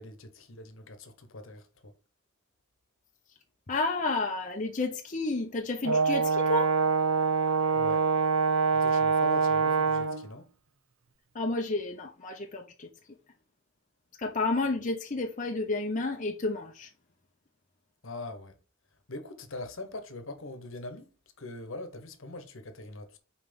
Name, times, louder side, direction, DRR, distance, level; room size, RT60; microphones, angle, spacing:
voice 1, 0.0-1.6 7.7-8.0 8.7-10.4 18.0-18.5 19.1-21.1 21.4-23.2, left 2 dB, 70° left, 1.2 m, -42 dB
voice 2, 3.7-6.7 11.4-12.9 14.2-16.9, left 2 dB, 35° left, 0.8 m, -31 dB
Brass instrument, 5.8-10.2, right 4 dB, 80° right, 1.0 m, -25 dB
5.8 x 4.7 x 5.2 m
head